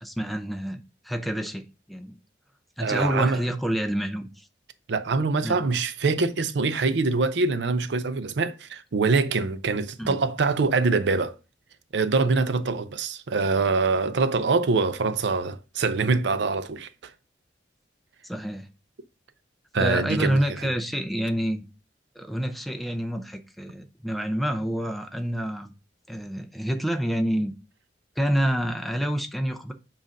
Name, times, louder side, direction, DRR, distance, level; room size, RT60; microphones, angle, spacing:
voice 1, 0.0-2.2 2.8-4.5 5.4-5.6 10.0-10.2 18.2-18.7 19.8-21.7 22.2-25.7 26.1-27.5 28.2-29.7, equal, ahead, 0.5 m, -28 dB
voice 2, 2.8-3.4 4.9-11.3 11.9-17.1 19.7-20.7, right 4 dB, 80° right, 0.5 m, -24 dB
7.4 x 2.5 x 5.2 m
head